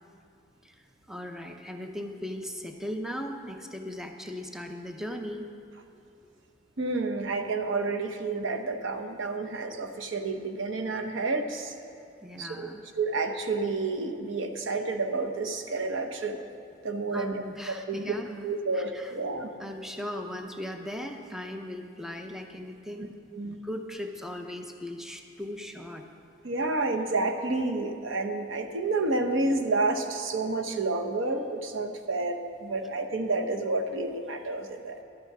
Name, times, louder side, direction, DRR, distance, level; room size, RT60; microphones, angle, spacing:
voice 1, 0.6-5.5 12.2-12.8 17.1-19.1 19.6-23.1 23.4-26.0, equal, ahead, 4 dB, 0.6 m, -38 dB
voice 2, 6.8-11.7 12.4-12.7 13.0-16.4 16.8-17.4 17.9-18.1 18.4-19.5 23.3-23.6 26.4-35.0, right 3 dB, 85° right, 5 dB, 0.8 m, -30 dB
11.5 x 8.1 x 6.0 m, 2.6 s
head